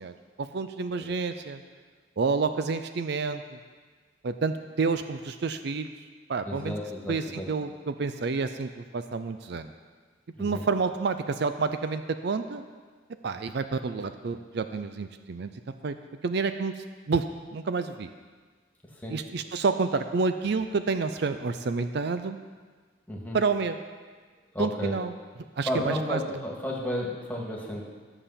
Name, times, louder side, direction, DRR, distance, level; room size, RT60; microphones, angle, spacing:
voice 1, 0.0-1.6 2.2-3.6 4.2-5.9 6.3-6.7 7.1-9.7 10.4-12.6 13.2-15.5 15.8-15.9 16.2-17.2 17.5-18.1 19.1-22.4 23.3-23.8 24.6-25.1 25.6-26.2, right 4 dB, 65° right, 9 dB, 0.5 m, -29 dB
voice 2, 6.4-7.5 10.4-10.6 18.9-19.2 23.1-23.4 24.5-24.9 25.7-27.8, left 1 dB, 10° left, -2 dB, 1.8 m, -32 dB
12.5 x 6.9 x 5.7 m, 1.5 s
head